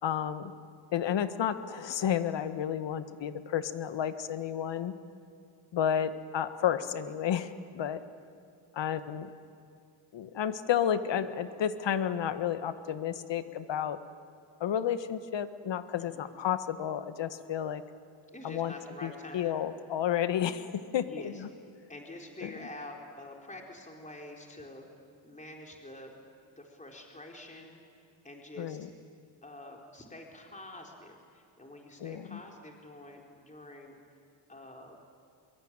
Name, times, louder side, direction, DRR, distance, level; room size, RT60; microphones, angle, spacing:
voice 1, 0.0-0.5 0.9-4.9 5.7-8.0 8.7-9.3 10.1-14.0 14.6-17.8 18.4-18.7 19.0-21.5 22.4-22.5 28.6-28.9 32.0-32.4, left 9 dB, 60° left, 11 dB, 1.6 m, -31 dB
voice 2, 18.3-19.6 21.0-21.4 21.9-24.9 25.2-26.1 26.5-27.8 28.2-28.9 29.4-34.0 34.5-35.0, left 1 dB, 15° left, 0 dB, 4.5 m, -47 dB
24.5 x 22.5 x 9.0 m, 2.3 s
supercardioid pair, 60°, 49 cm